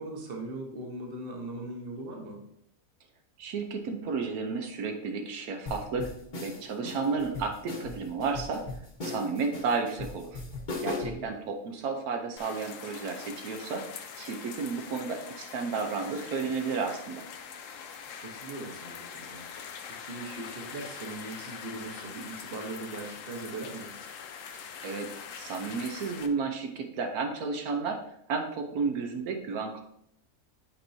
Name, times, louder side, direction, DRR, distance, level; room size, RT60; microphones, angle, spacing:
voice 1, 0.0-2.4 11.0-11.4 18.2-19.4 19.8-23.9, right 2 dB, 45° right, 1 dB, 1.2 m, -40 dB
voice 2, 3.4-6.1 6.4-8.6 9.0-10.4 10.8-13.9 14.2-17.3 24.8-28.0 28.3-29.8, right 4 dB, 85° right, 4 dB, 1.3 m, -32 dB
sound 1, 5.7-11.3, left 3 dB, 35° left, 1.1 m, -38 dB
sound 2, 12.4-26.3, left 7 dB, 70° left, 0.9 m, -43 dB
8.6 x 4.5 x 2.7 m, 0.72 s
omnidirectional pair, 1.5 m